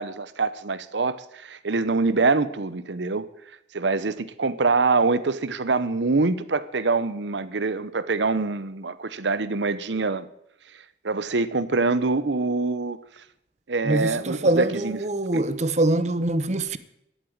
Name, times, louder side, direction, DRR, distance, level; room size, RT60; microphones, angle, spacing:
voice 1, 0.0-3.3 3.7-10.3 11.0-13.0 13.7-15.0 15.3-15.4, right 3 dB, 75° right, 0.8 m, -24 dB
voice 2, 13.8-16.8, right 2 dB, 40° right, 0.8 m, -24 dB
11.5 x 8.8 x 8.6 m
head